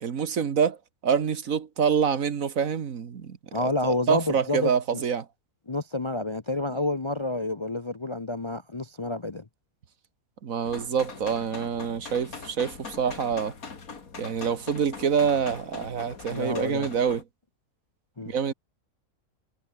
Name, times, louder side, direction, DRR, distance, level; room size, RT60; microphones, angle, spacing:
voice 1, 0.0-0.8 1.0-5.3 10.4-13.5 14.2-17.2 18.3-18.5, right 7 dB, 60° right, 1.7 m, -26 dB
voice 2, 3.5-5.0 5.7-9.4 16.3-16.9 18.2-18.3, left 2 dB, 25° left, 0.7 m, -29 dB
sound 1, 10.6-17.2, left 5 dB, 65° left, 2.8 m, -42 dB
omnidirectional pair, 1.6 m